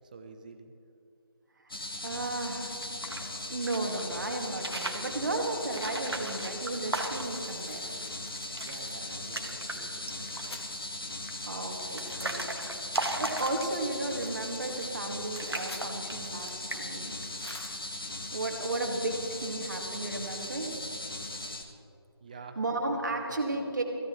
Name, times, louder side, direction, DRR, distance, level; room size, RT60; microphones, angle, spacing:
voice 1, 0.1-0.7 8.5-10.7 22.2-22.6 22.9-23.7, right 4 dB, 20° right, 6 dB, 0.8 m, -49 dB
sound 1, 1.7-21.6, left 2 dB, 60° left, 1.8 m, -39 dB
voice 2, 2.0-7.9 11.5-12.4 13.2-17.1 18.3-20.8 22.6-23.8, right 2 dB, 45° right, 2 dB, 2.2 m, -34 dB
sound 2, 2.7-4.0 4.5-5.1 5.7-7.5 7.9-8.0 8.2-8.8 9.1-9.8 10.1-10.6 11.3-14.0 14.7-15.1 15.3-16.4 16.7-17.1, right 2 dB, 70° right, 1.7 m, -37 dB
sound 3, 7.2-10.7 11.1-11.2 11.4-12.7 13.1-18.1, left 1 dB, 75° left, 2.2 m, -51 dB
25.0 x 15.5 x 3.2 m, 2.8 s
figure-of-eight pair, 160°, 13 cm